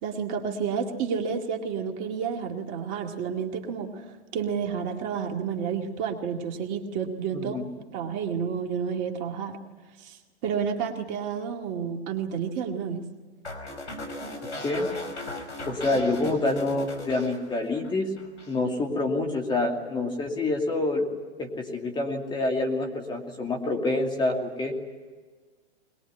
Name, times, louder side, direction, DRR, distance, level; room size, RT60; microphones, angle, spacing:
voice 1, 0.0-7.6 7.9-9.6 10.0-13.1, right 6 dB, 35° right, 2 dB, 2.2 m, -30 dB
voice 2, 7.3-7.7 14.6-14.9 15.7-18.1 18.5-21.1 21.4-24.7, left 2 dB, 15° left, 2 dB, 2.6 m, -27 dB
sound 1, 13.4-17.9 18.2-18.6, left 1 dB, 90° left, 5.1 m, -37 dB
22.0 x 21.0 x 9.9 m, 1.4 s
hypercardioid pair, 135°, 34 cm